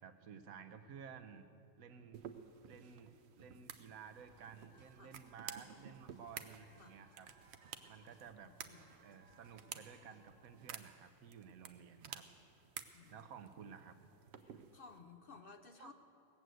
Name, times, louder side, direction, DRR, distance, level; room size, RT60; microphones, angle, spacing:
voice 1, 0.0-1.5 1.8-2.2 2.6-7.3 7.9-8.5 9.0-12.2 13.1-14.0 15.8-15.9, right 7 dB, 80° right, 9 dB, 1.2 m, -54 dB
sound 1, 2.1-15.0, right 8 dB, 60° right, 0.9 m, -53 dB
sound 2, 4.2-10.8, right 2 dB, 40° right, 1.2 m, -68 dB
voice 2, 8.4-8.9 12.9-13.3 14.4-15.9, left 4 dB, 50° left, 6 dB, 0.7 m, -58 dB
18.5 x 7.9 x 7.6 m, 2.6 s
omnidirectional pair, 1.5 m